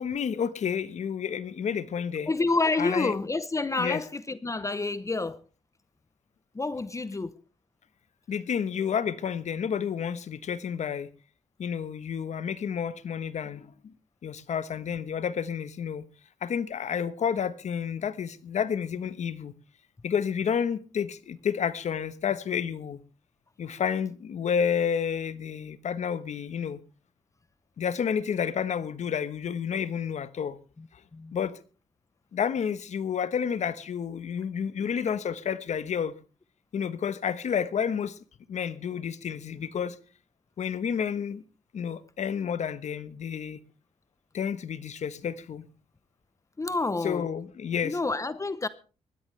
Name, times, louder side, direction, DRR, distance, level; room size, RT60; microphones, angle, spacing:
voice 1, 0.0-2.3 2.8-3.1 3.8-4.0 8.3-11.1 11.6-13.9 14.2-16.0 16.4-19.5 20.0-23.0 23.6-26.8 27.8-30.6 31.3-31.6 32.3-36.1 36.7-38.2 38.5-40.0 40.6-41.4 41.7-43.6 44.3-45.6 47.0-48.0, left 7 dB, 70° left, 1.1 m, -30 dB
voice 2, 2.3-5.4 6.5-7.3 30.8-30.9 31.1-31.3 46.6-47.3 47.8-48.7, left 3 dB, 25° left, 0.8 m, -28 dB
20.0 x 13.5 x 3.3 m
cardioid pair, 75°, 12 cm